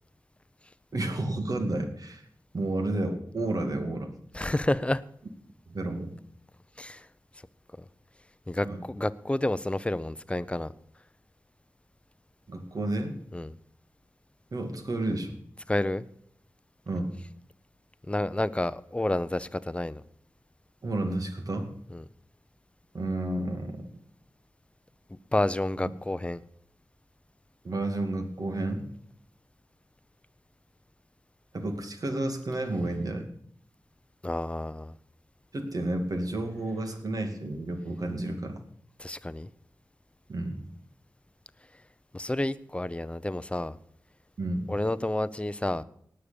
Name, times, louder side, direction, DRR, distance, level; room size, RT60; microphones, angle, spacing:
voice 1, 0.9-2.2 2.5-4.1 5.7-6.2 8.6-8.8 12.5-13.2 14.5-15.4 16.9-17.1 20.8-21.7 22.9-23.8 27.6-28.9 31.5-33.3 35.5-38.6 40.3-40.6 44.4-44.7, right 2 dB, 60° right, 5 dB, 2.4 m, -31 dB
voice 2, 4.3-5.0 6.8-7.1 7.8-7.9 8.5-10.7 13.3-13.6 15.7-16.0 18.1-20.0 21.9-22.0 25.1-26.4 34.2-34.9 39.0-39.5 42.1-43.8 44.7-45.8, left 1 dB, 15° left, 16 dB, 0.7 m, -30 dB
18.5 x 6.6 x 6.9 m, 0.68 s
wide cardioid pair, 70°, 7 cm